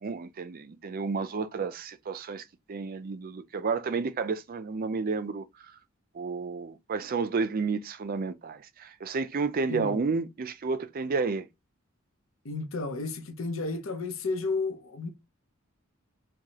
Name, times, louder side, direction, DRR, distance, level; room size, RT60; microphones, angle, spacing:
voice 1, 0.0-2.4 2.7-5.5 6.1-11.5, right 4 dB, 45° right, 0.4 m, -31 dB
voice 2, 9.7-10.0 12.4-15.1, left 3 dB, 70° left, 0.8 m, -32 dB
4.6 x 2.2 x 2.9 m
head